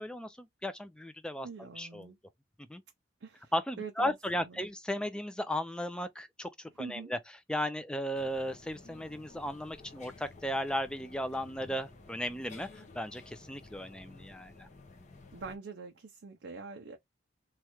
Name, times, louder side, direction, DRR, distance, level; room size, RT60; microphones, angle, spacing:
voice 1, 0.0-1.5 1.8-2.1 2.7-2.8 3.5-7.2 7.5-14.7, equal, 5° left, 0.3 m, -36 dB
voice 2, 1.4-2.2 3.2-4.6 6.8-7.1 15.3-17.0, right 5 dB, 75° right, 0.5 m, -45 dB
sound 1, 8.1-15.6, left 3 dB, 40° left, 0.7 m, -53 dB
3.1 x 2.3 x 2.9 m
head